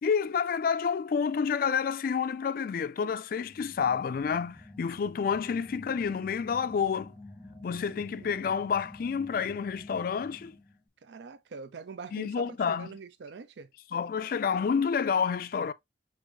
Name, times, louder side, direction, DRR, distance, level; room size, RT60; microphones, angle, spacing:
voice 1, 0.0-7.1 7.6-10.6 12.1-12.9 13.9-15.7, left 6 dB, 50° left, 0.3 m, -29 dB
sound 1, 3.4-10.8, left 2 dB, 5° left, 0.9 m, -48 dB
voice 2, 7.9-8.5 11.0-13.7, right 5 dB, 70° right, 0.4 m, -44 dB
6.2 x 2.6 x 2.5 m
head